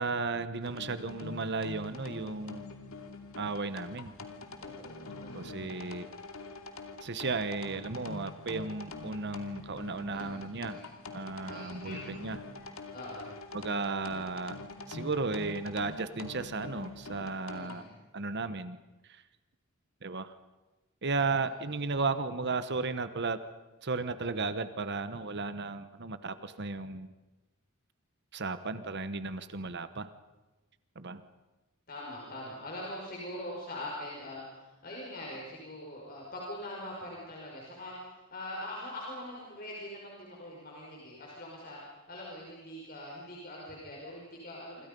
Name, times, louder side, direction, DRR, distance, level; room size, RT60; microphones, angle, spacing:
voice 1, 0.0-2.8 3.4-4.1 5.3-6.1 7.0-10.8 11.1-12.4 13.5-14.6 14.9-17.8 18.1-18.8 19.0-19.2 20.0-20.4 21.0-23.4 23.8-27.1 28.3-30.1 30.9-31.2, right 3 dB, 50° right, 12 dB, 1.1 m, -34 dB
sound 1, 0.6-17.8, left 3 dB, 70° left, 2.7 m, -45 dB
voice 2, 4.6-6.0 9.4-9.5 9.9-10.9 11.3-12.1 12.6-13.3 13.6-13.7 14.8-14.9 17.3-17.9 31.9-44.9, left 1 dB, 45° left, -3 dB, 5.6 m, -43 dB
28.0 x 26.5 x 5.4 m, 1.1 s
head